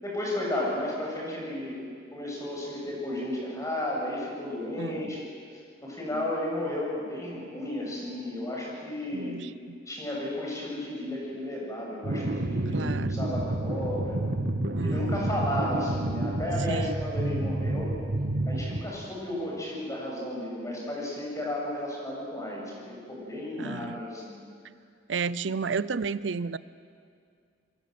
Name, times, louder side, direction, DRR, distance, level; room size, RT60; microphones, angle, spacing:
voice 1, 0.0-1.8 2.1-5.2 5.8-9.3 9.9-14.2 14.8-17.9 18.5-24.4, left 1 dB, 20° left, -3 dB, 7.2 m, -33 dB
voice 2, 4.8-5.2 6.1-6.3 9.1-9.8 12.7-13.2 14.7-15.3 16.7-17.0 23.6-24.0 25.1-26.6, right 5 dB, 80° right, 17 dB, 0.6 m, -32 dB
sound 1, 12.0-18.8, right 1 dB, 65° right, 1.4 m, -29 dB
27.0 x 22.0 x 7.8 m, 2.2 s
head